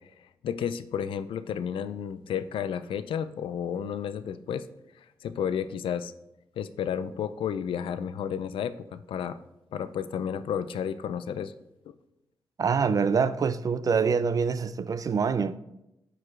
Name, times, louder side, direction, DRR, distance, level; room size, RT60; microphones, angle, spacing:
voice 1, 0.4-4.6 5.2-6.1 6.6-9.4 9.7-11.5 11.9-12.0, left 8 dB, 85° left, 0.4 m, -32 dB
voice 2, 12.6-15.6, right 5 dB, 45° right, 0.4 m, -25 dB
11.0 x 4.7 x 2.4 m
cardioid pair, 80°, 9 cm